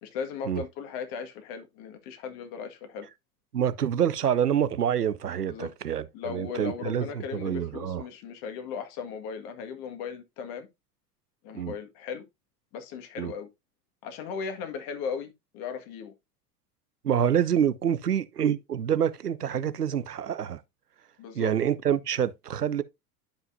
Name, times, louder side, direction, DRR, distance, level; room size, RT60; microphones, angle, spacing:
voice 1, 0.0-3.1 5.5-5.7 6.1-10.7 11.4-12.2 12.7-13.5 14.0-16.1 21.2-21.5, left 6 dB, 45° left, 1.8 m, -37 dB
voice 2, 3.5-8.0 11.5-11.7 13.2-13.3 17.0-20.6 21.3-22.8, right 9 dB, 90° right, 0.5 m, -27 dB
11.5 x 5.5 x 2.6 m
figure-of-eight pair, 80°, 46 cm